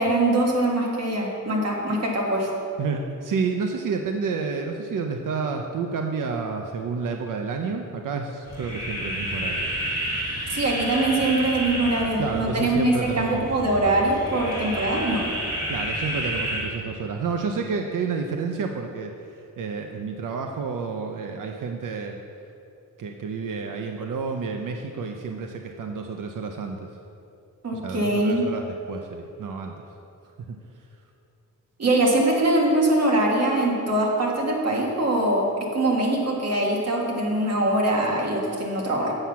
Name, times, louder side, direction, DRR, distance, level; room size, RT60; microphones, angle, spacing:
voice 1, 0.0-2.5 10.5-15.3 27.6-28.5 31.8-39.1, right 1 dB, 50° right, -2 dB, 1.8 m, -23 dB
voice 2, 2.8-9.7 12.2-13.5 15.7-19.1 19.6-22.2 23.0-26.9 27.7-29.7, right 5 dB, 70° right, 3 dB, 0.6 m, -30 dB
sound 1, 8.5-16.6, equal, 15° right, 2.3 m, -30 dB
7.7 x 7.3 x 5.7 m, 2.7 s
wide cardioid pair, 125°, 33 cm